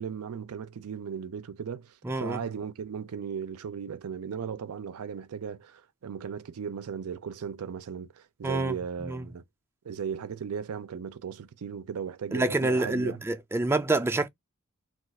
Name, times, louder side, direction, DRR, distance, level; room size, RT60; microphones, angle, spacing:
voice 1, 0.0-9.4 9.8-13.2, right 7 dB, 90° right, 0.4 m, -37 dB
voice 2, 2.0-2.4 8.4-8.8 9.1-9.2 12.3-14.3, right 2 dB, 10° right, 0.4 m, -27 dB
2.4 x 2.3 x 3.9 m
head